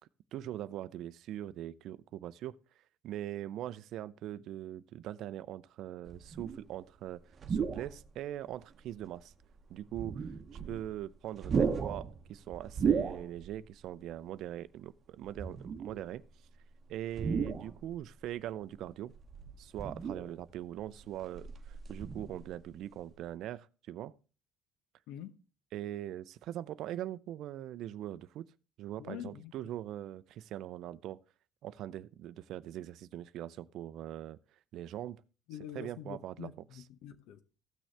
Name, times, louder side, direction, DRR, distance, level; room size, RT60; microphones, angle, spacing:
voice 1, 0.3-2.6 3.0-7.2 7.5-9.3 9.7-16.2 16.9-19.1 19.6-24.1 25.7-28.5 28.8-31.2 31.6-34.4 34.7-35.2 35.7-36.5, right 12 dB, 70° right, 0.4 m, -41 dB
sound 1, 6.1-6.7 7.3-8.1 8.7-8.8 9.8-11.0 11.3-13.6 13.9-14.1 15.3-16.1 17.1-18.1 19.1-20.5 21.0-22.7 23.0-23.2, right 6 dB, 40° right, 0.8 m, -35 dB
voice 2, 25.1-25.4 29.0-29.5 35.5-37.4, left 10 dB, 80° left, 0.9 m, -45 dB
15.0 x 6.3 x 3.3 m
supercardioid pair, 90°, 0 cm